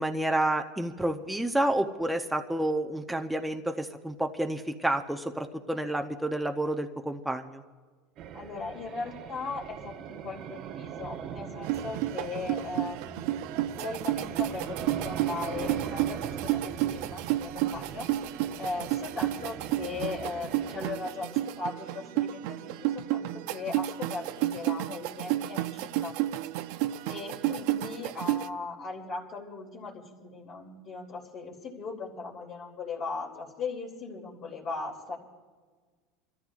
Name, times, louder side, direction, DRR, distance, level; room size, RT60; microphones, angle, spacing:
voice 1, 0.0-7.6, right 1 dB, 5° right, 3 dB, 0.7 m, -29 dB
sound 1, 8.2-20.9, right 8 dB, 45° right, 0.8 m, -40 dB
voice 2, 8.3-13.4 13.8-18.1 18.6-26.1 27.1-35.2, left 4 dB, 40° left, 0 dB, 2.8 m, -38 dB
sound 2, 11.6-28.5, right 14 dB, 70° right, 0.5 m, -31 dB
29.0 x 14.0 x 2.4 m, 1.4 s
supercardioid pair, 135°, 0 cm